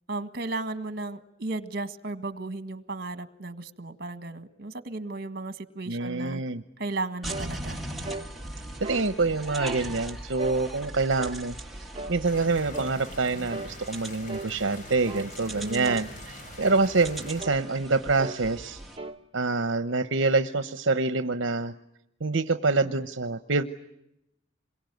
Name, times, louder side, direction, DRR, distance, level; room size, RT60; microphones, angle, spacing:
voice 1, 0.1-6.4 6.8-7.8 15.5-15.9, right 2 dB, 50° right, 12 dB, 1.7 m, -35 dB
voice 2, 5.9-6.6 8.8-11.6 12.1-18.8 19.3-21.7 22.2-23.6, right 3 dB, 70° right, 11 dB, 1.0 m, -26 dB
sound 1, 7.2-19.0, right 1 dB, ahead, 2.4 m, -40 dB
sound 2, 7.3-7.5 8.1-8.3 8.8-9.1 9.6-9.8 10.4-10.6 11.2-11.4 12.0-12.2 12.7-13.0 13.5-13.8 14.3-14.5 15.1-15.3 15.8-16.1 16.6-16.8 17.4-17.6 18.2-18.4 19.0-19.2, right 3 dB, 30° right, 1.2 m, -36 dB
sound 3, 12.2-17.4, left 1 dB, 45° left, 3.7 m, -44 dB
27.5 x 23.0 x 9.3 m, 0.83 s
head